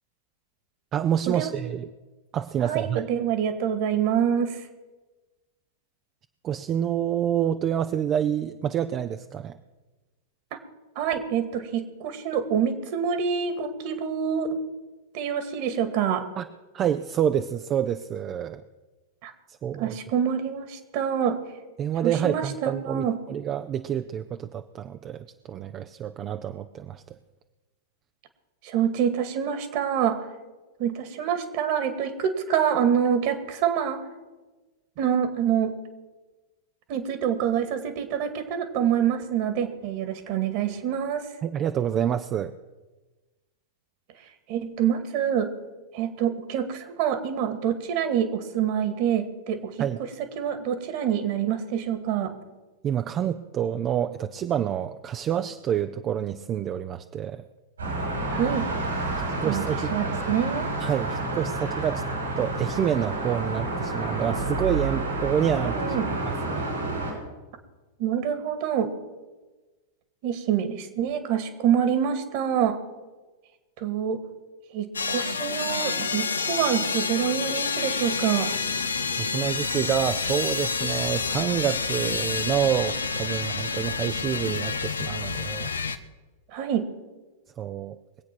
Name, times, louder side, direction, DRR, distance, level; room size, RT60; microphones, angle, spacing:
voice 1, 0.9-1.9 2.3-3.0 6.4-9.6 16.4-16.5 16.7-18.6 19.6-20.0 21.8-27.0 41.4-42.5 49.8-50.0 52.8-57.4 59.4-59.9 60.8-62.0 62.4-65.9 66.2-66.7 79.2-85.7 87.6-88.0, right 9 dB, 35° right, 9 dB, 0.6 m, -28 dB
voice 2, 2.6-4.6 10.5-10.6 11.0-14.6 15.1-16.3 19.2-19.3 19.8-21.4 22.0-23.2 28.6-30.3 30.8-34.0 35.0-35.8 36.9-41.3 44.5-45.5 45.9-52.3 58.3-58.7 59.4-59.6 59.9-60.7 65.6-66.1 68.0-68.9 70.2-72.8 73.8-74.2 74.7-78.5 86.5-86.9, right 8 dB, 50° right, 10 dB, 2.1 m, -26 dB
sound 1, 57.8-67.1, right 2 dB, 85° right, 6.2 m, -29 dB
sound 2, 74.9-86.0, left 4 dB, 85° left, 0.8 m, -28 dB
22.0 x 8.4 x 6.1 m, 1.2 s
hypercardioid pair, 100°, 0 cm